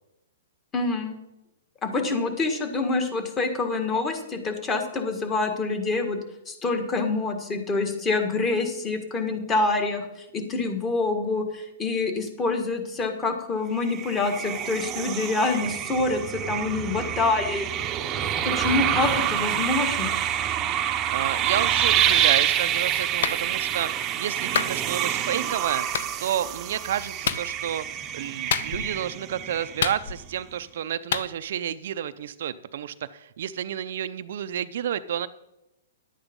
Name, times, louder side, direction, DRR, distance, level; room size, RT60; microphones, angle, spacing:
voice 1, 0.7-1.1 1.8-6.2 6.5-17.8 18.4-20.1, left 3 dB, 20° left, 6 dB, 1.7 m, -26 dB
sound 1, 13.8-30.1, right 10 dB, 25° right, 0.8 m, -27 dB
voice 2, 21.1-25.9 26.2-35.3, right 10 dB, 60° right, 12 dB, 0.5 m, -30 dB
Clapping, 23.2-23.4 24.5-24.8 25.9-26.1 27.2-27.5 28.5-29.0 29.8-30.4 31.1-31.3, left 8 dB, 65° left, 0.7 m, -27 dB
11.0 x 8.8 x 5.3 m, 0.87 s
hypercardioid pair, 145°, 0 cm